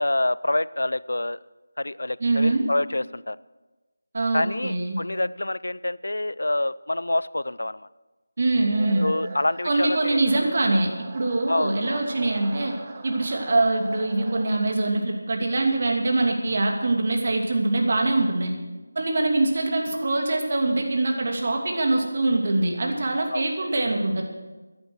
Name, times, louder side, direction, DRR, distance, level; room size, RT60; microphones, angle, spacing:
voice 1, 0.0-1.4 1.8-3.4 4.3-7.8 9.0-10.2 11.5-12.0 23.3-23.5, left 1 dB, 80° left, 19 dB, 0.5 m, -26 dB
voice 2, 2.2-2.7 4.1-5.0 8.4-9.1 9.6-12.7 13.0-18.5 18.9-24.2, right 2 dB, 45° right, 2 dB, 2.7 m, -23 dB
sound 1, 8.7-14.9, right 3 dB, 20° right, 1.3 m, -42 dB
16.0 x 10.5 x 6.3 m, 1.2 s
figure-of-eight pair, 170°, 0 cm